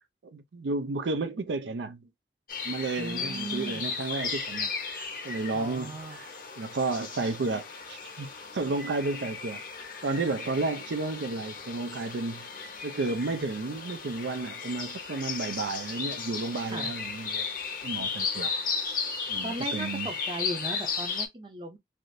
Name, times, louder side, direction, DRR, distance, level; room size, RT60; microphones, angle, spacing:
voice 1, 0.2-2.0 2.6-6.3 6.6-9.6 10.0-12.5 12.8-17.5 17.8-18.5 18.8-19.0 19.3-20.1, right 3 dB, 85° right, 0.5 m, -32 dB
sound 1, 2.5-21.3, left 5 dB, 50° left, 0.8 m, -35 dB
voice 2, 3.0-3.8 5.5-6.2 16.7-16.9 19.4-21.8, right 2 dB, 25° right, 0.5 m, -37 dB
3.4 x 2.5 x 2.6 m
head